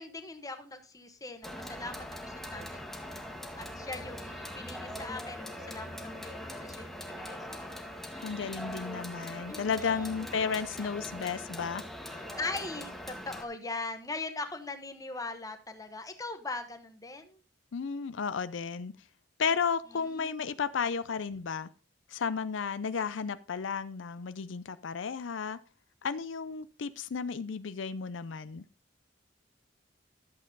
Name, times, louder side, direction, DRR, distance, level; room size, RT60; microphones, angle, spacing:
voice 1, 0.0-3.2 3.5-8.6 9.5-10.1 10.8-10.9 12.2-17.4 19.9-20.3, left 3 dB, 20° left, 1.2 m, -41 dB
sound 1, 1.4-13.4, equal, ahead, 1.4 m, -42 dB
voice 2, 8.2-11.9 17.7-18.9 19.4-21.7 22.1-25.6 26.0-28.6, left 6 dB, 85° left, 0.5 m, -33 dB
11.5 x 7.5 x 3.9 m
head